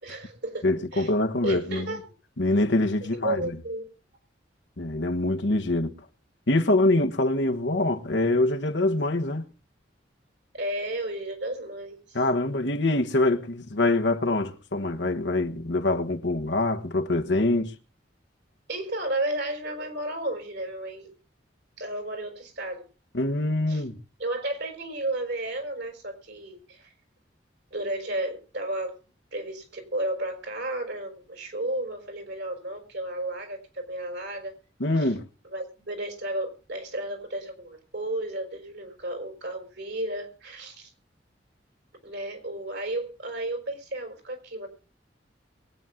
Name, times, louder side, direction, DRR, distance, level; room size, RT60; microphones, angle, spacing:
voice 1, 0.0-1.1 1.4-2.0 3.1-3.8 10.5-12.2 18.7-21.2 21.8-22.9 23.7-23.8 24.2-26.9 27.7-29.0 29.3-34.5 35.0-35.1 35.5-40.9 42.0-44.7, right 1 dB, 65° right, 5.3 m, -33 dB
voice 2, 0.6-1.9 2.4-3.5 4.8-5.9 6.5-9.4 12.1-17.7 23.1-24.0 34.8-35.3, left 2 dB, 70° left, 1.4 m, -24 dB
22.5 x 9.4 x 3.8 m
head